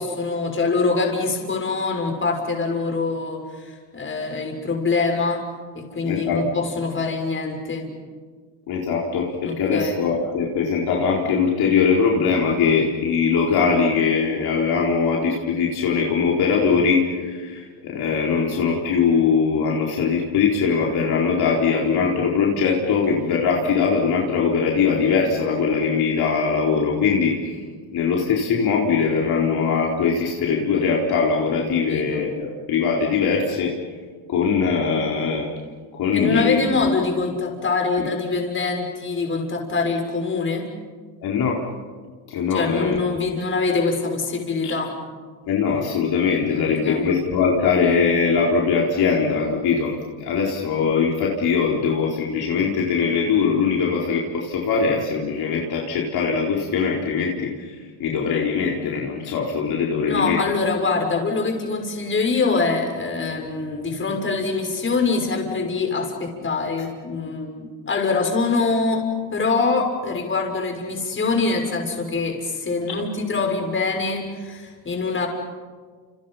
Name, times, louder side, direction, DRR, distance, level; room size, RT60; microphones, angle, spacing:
voice 1, 0.0-5.4 5.7-7.9 9.4-10.0 31.8-32.2 36.1-40.7 42.5-44.9 46.8-47.1 60.0-69.1 69.3-75.3, left 4 dB, 25° left, 2 dB, 6.5 m, -24 dB
voice 2, 6.0-6.4 8.7-27.6 27.9-33.7 34.3-35.5 35.9-36.6 38.0-38.1 41.2-41.6 42.3-43.0 44.6-44.7 45.5-60.4, left 5 dB, 50° left, -2 dB, 4.4 m, -21 dB
30.0 x 29.0 x 5.8 m, 1.6 s
supercardioid pair, 110°, 48 cm